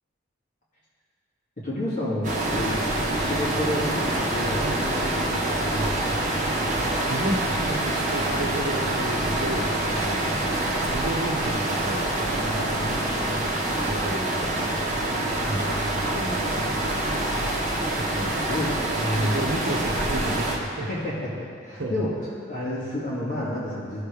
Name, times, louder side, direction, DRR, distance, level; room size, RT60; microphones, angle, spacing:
voice 1, 1.6-4.7 5.1-6.2 15.4-16.1 18.4-19.4 20.8-22.1 22.5-24.0, left 1 dB, 40° left, -9 dB, 2.2 m, -30 dB
sound 1, 2.2-20.6, right 1 dB, 40° right, 1.3 m, -26 dB
voice 2, 7.1-14.8 15.3-15.7 16.1-17.3 17.9-18.5 18.7-18.9 19.1-20.9 21.7-22.1, right 1 dB, 65° right, -5 dB, 1.0 m, -33 dB
16.0 x 6.6 x 3.4 m, 2.3 s
head